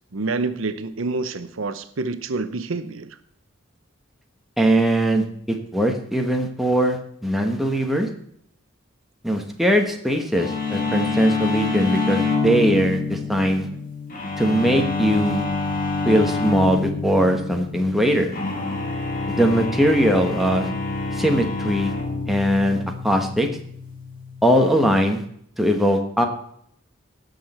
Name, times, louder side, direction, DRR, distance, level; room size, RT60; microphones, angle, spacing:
voice 1, 0.1-3.1, right 3 dB, 75° right, 12 dB, 0.8 m, -27 dB
voice 2, 4.6-5.2 5.7-8.1 9.2-13.7 14.4-15.4 16.0-18.3 19.3-20.7 21.1-21.9 22.3-23.5 24.4-25.2 25.6-26.3, equal, ahead, 2 dB, 1.3 m, -20 dB
sound 1, 10.3-24.8, left 3 dB, 40° left, 2.2 m, -27 dB
17.5 x 6.4 x 4.4 m, 0.66 s
head